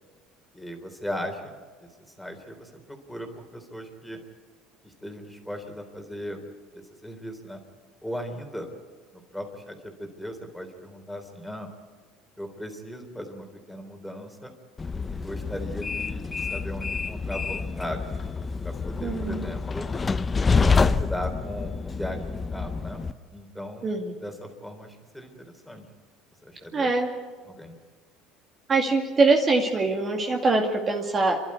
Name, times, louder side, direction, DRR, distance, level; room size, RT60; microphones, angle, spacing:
voice 1, 0.5-1.6 1.8-1.9 2.2-4.2 4.8-6.5 6.7-7.6 8.0-8.7 9.3-11.7 12.4-14.5 15.1-18.1 18.6-19.9 20.5-23.0 23.3-23.9 24.2-25.9 26.4-26.9 27.5-27.7, equal, 5° left, 4 dB, 3.6 m, -37 dB
Train, 14.8-23.1, left 4 dB, 20° left, 0.7 m, -27 dB
voice 2, 19.0-19.4 23.8-24.1 26.7-27.1 28.7-31.4, right 3 dB, 30° right, 1 dB, 2.2 m, -23 dB
28.0 x 12.0 x 9.7 m, 1.5 s
supercardioid pair, 105°, 0 cm